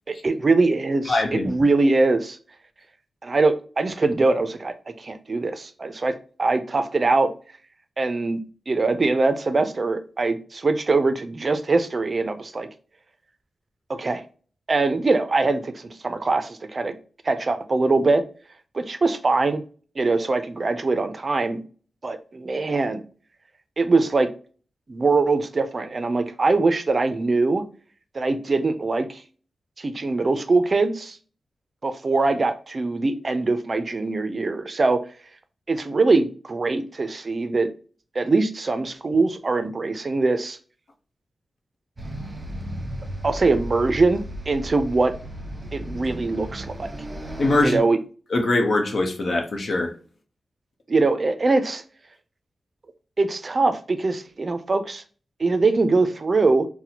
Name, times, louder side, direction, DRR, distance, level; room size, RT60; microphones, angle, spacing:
voice 1, 0.1-2.4 3.2-7.3 8.0-12.7 13.9-14.2 14.7-16.9 17.2-18.2 18.7-19.6 20.0-21.6 22.0-23.0 23.8-24.3 24.9-27.7 28.1-29.2 29.8-31.2 31.8-35.0 35.7-37.7 38.2-40.6 43.2-45.1 45.7-46.9 47.6-48.0 50.9-51.8 53.2-55.0 55.4-56.7, right 3 dB, 45° right, 0.4 m, -22 dB
voice 2, 1.1-1.5 47.4-47.8 48.3-49.9, left 2 dB, 65° left, 0.7 m, -22 dB
sound 1, 42.0-47.7, equal, 20° right, 1.0 m, -35 dB
4.1 x 2.1 x 2.8 m
cardioid pair, 75°, 0 cm